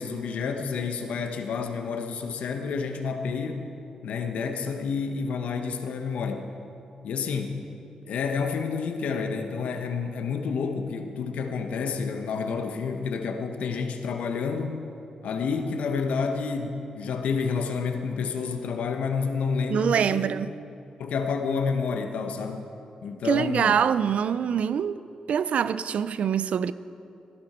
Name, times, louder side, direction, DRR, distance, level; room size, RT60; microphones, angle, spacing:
voice 1, 0.0-3.7 4.0-6.4 7.0-7.6 8.0-14.9 15.2-20.3 21.0-22.7 23.0-23.7, left 5 dB, 80° left, 1.0 m, -29 dB
voice 2, 19.7-20.5 23.2-25.0 25.3-26.7, right 8 dB, 70° right, 0.4 m, -24 dB
15.5 x 11.5 x 4.3 m
cardioid pair, 65°, 2 cm